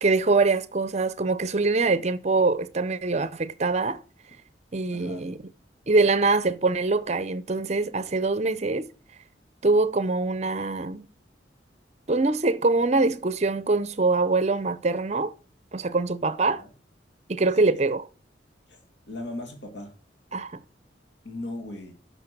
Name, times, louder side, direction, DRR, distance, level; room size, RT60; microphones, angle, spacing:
voice 1, 0.0-4.0 4.7-5.4 5.9-8.9 9.6-11.1 12.1-15.3 15.7-16.6 17.3-18.1 20.3-20.6, right 3 dB, 40° right, 0.7 m, -24 dB
voice 2, 4.9-5.3 16.6-16.7 17.6-17.7 18.7-18.8 19.1-19.9 21.2-21.9, left 2 dB, 70° left, 2.3 m, -37 dB
10.0 x 6.6 x 6.0 m
head